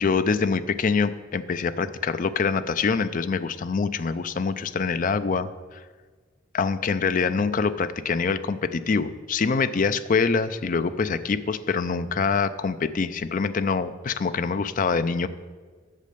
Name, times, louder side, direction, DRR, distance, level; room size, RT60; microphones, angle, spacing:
voice 1, 0.0-5.5 6.5-15.3, left 5 dB, 40° left, 13 dB, 0.4 m, -25 dB
8.3 x 6.5 x 6.8 m, 1.5 s
head